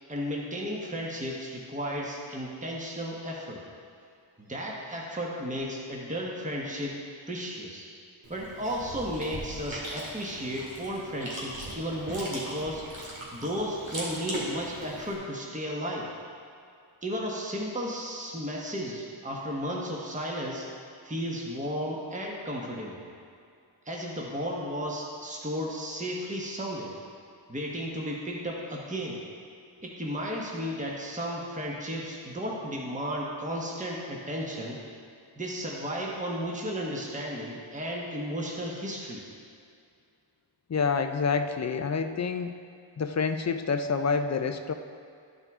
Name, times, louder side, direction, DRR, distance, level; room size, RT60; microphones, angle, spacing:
voice 1, 0.1-3.6 4.4-7.0 7.3-7.9 8.3-13.0 13.3-16.1 17.0-20.7 21.0-23.0 23.8-26.9 27.5-29.2 29.8-34.8 35.4-39.2, equal, 15° right, -3 dB, 1.2 m, -34 dB
Chewing mastication, 8.2-15.1, right 1 dB, 70° right, 2.2 m, -39 dB
voice 2, 40.7-42.5 43.0-44.7, left 5 dB, 35° left, 8 dB, 0.5 m, -28 dB
12.0 x 5.4 x 3.6 m, 2.4 s
wide cardioid pair, 65°, 48 cm